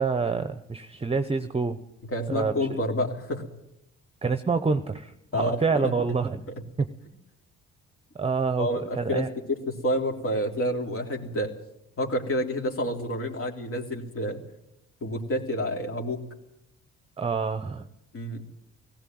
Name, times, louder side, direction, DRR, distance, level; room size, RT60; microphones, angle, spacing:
voice 1, 0.0-1.8 2.3-2.5 4.2-6.4 6.8-6.9 8.1-9.3 17.2-17.9, right 4 dB, 20° right, 10 dB, 1.0 m, -27 dB
voice 2, 2.1-3.4 5.3-5.9 8.6-11.5 12.0-14.4 15.0-16.2 18.1-18.4, equal, 45° left, 1 dB, 3.5 m, -29 dB
17.0 x 16.5 x 9.4 m, 0.83 s
cardioid pair, 90°, 30 cm